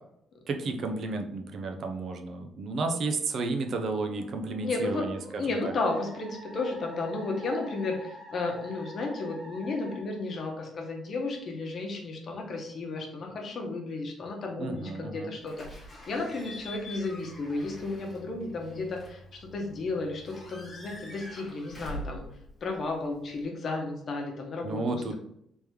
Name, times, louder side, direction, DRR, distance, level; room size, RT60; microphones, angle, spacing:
voice 1, 0.5-5.6 14.6-15.3 24.6-25.2, right 3 dB, 55° right, 5 dB, 0.5 m, -32 dB
Musical instrument, 4.0-10.9, equal, 30° right, 1.3 m, -47 dB
voice 2, 4.6-5.1 5.3-15.7 16.1-22.3 22.6-25.2, left 3 dB, 45° left, 1 dB, 0.9 m, -33 dB
Slam / Squeak / Alarm, 15.5-23.4, left 1 dB, 25° left, 1.2 m, -45 dB
3.5 x 3.0 x 3.5 m, 0.75 s
cardioid pair, 125°, 0 cm